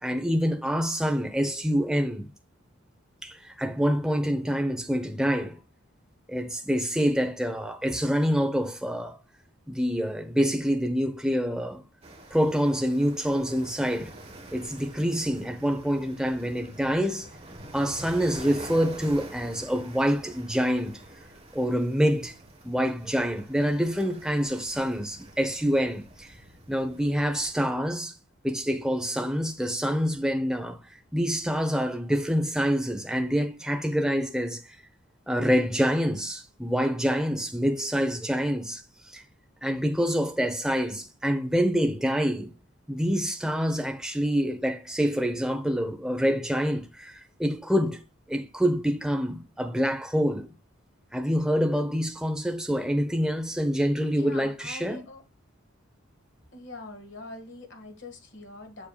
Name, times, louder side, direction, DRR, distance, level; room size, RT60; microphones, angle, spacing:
voice 1, 0.0-2.3 3.2-5.6 6.3-9.2 9.7-11.8 12.3-14.1 14.5-17.3 17.7-21.0 21.5-22.3 22.6-26.3 26.7-28.1 28.4-30.8 31.1-34.8 35.3-38.8 39.1-39.2 39.6-42.5 42.9-48.0 48.3-50.5 51.1-55.0, equal, 5° right, 0.8 m, -26 dB
sound 1, 12.0-27.5, right 1 dB, 30° right, 1.3 m, -46 dB
voice 2, 54.1-55.2 56.5-58.9, left 2 dB, 65° left, 1.8 m, -43 dB
7.2 x 6.8 x 2.3 m
head